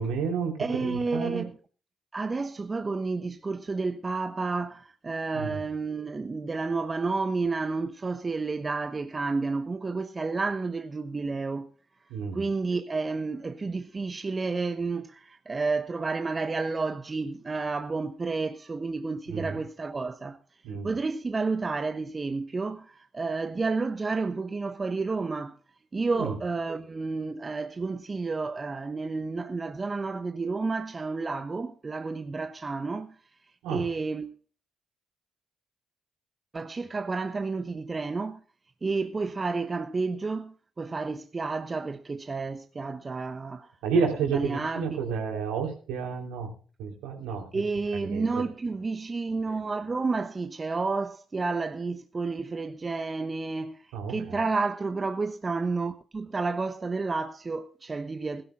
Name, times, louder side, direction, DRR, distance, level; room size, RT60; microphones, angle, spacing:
voice 1, 0.0-0.5 0.8-1.4 5.3-5.5 12.1-12.4 19.3-19.6 20.6-20.9 26.2-26.3 33.6-33.8 43.8-46.5 46.8-47.5 48.0-48.4 53.9-54.4, right 5 dB, 75° right, 3.6 m, -30 dB
voice 2, 0.6-1.6 2.1-11.7 12.3-20.4 20.8-25.5 25.9-33.1 33.7-34.4 36.5-38.4 38.8-43.7 44.0-45.0 47.5-58.4, right 3 dB, 35° right, 1.1 m, -31 dB
20.5 x 13.0 x 2.4 m
hypercardioid pair, 40°, 0 cm